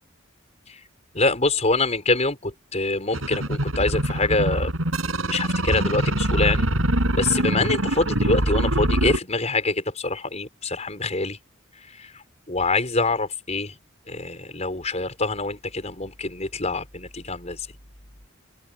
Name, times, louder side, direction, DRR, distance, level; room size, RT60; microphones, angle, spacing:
voice 1, 1.1-4.7 5.0-6.7 7.1-11.4 11.8-13.8 14.1-17.7, left 3 dB, 35° left, 5.4 m, -25 dB
sound 1, 3.1-9.2, right 1 dB, 80° right, 6.2 m, -23 dB
open air
head